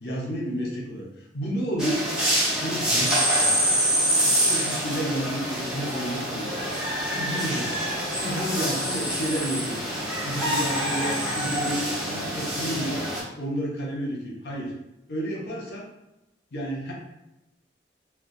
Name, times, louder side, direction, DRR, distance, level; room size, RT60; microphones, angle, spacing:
voice 1, 0.0-1.1 1.3-2.1 2.6-3.5 4.1-6.7 7.0-7.9 8.2-9.8 10.2-13.1 13.4-14.7 15.1-15.9 16.5-16.9, equal, 65° left, -2 dB, 0.7 m, -31 dB
sound 1, 1.8-13.2, equal, 5° right, 0.5 m, -26 dB
2.3 x 2.2 x 2.5 m, 0.94 s
head